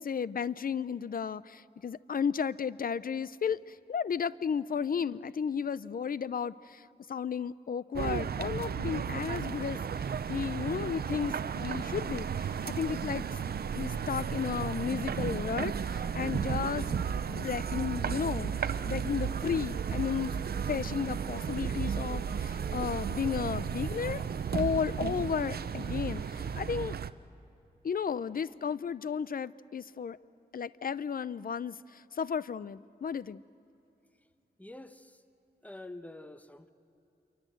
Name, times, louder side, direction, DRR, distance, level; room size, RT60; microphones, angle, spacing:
voice 1, 0.0-13.3 13.7-20.3 20.7-24.2 24.5-27.0 27.8-30.2 30.5-33.4, left 7 dB, 60° left, 18 dB, 0.7 m, -34 dB
sound 1, 8.0-27.1, right 7 dB, 65° right, 0.7 m, -34 dB
sound 2, 9.3-26.6, right 2 dB, 30° right, 4.4 m, -53 dB
voice 2, 34.6-35.2 35.6-36.7, left 2 dB, 10° left, 9 dB, 1.3 m, -47 dB
27.5 x 24.0 x 7.9 m, 2.9 s
cardioid pair, 55°, 17 cm